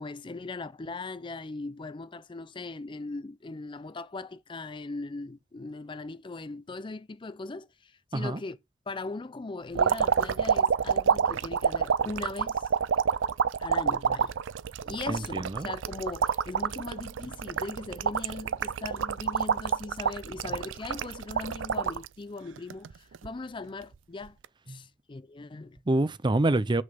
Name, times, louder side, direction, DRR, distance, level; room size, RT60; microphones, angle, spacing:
voice 1, 0.0-8.6 8.9-12.7 13.6-14.3 14.8-24.4 24.7-25.8, left 3 dB, 25° left, 0.5 m, -39 dB
sound 1, 9.7-22.1 22.6-23.3 24.3-24.5, right 7 dB, 80° right, 0.5 m, -28 dB
voice 2, 15.1-15.7 24.7-24.8 25.9-26.8, right 2 dB, 25° right, 0.6 m, -26 dB
7.9 x 6.3 x 5.3 m
head